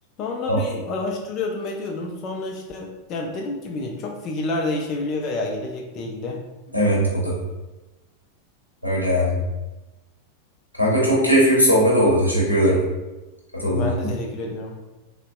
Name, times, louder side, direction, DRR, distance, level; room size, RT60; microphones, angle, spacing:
voice 1, 0.2-6.4 13.7-14.8, left 2 dB, 35° left, 0 dB, 0.3 m, -29 dB
voice 2, 6.7-7.3 8.8-9.4 10.8-12.8 13.5-13.9, equal, 90° left, -6 dB, 0.8 m, -19 dB
3.9 x 2.1 x 2.2 m, 1.1 s
figure-of-eight pair, 90°, 0 cm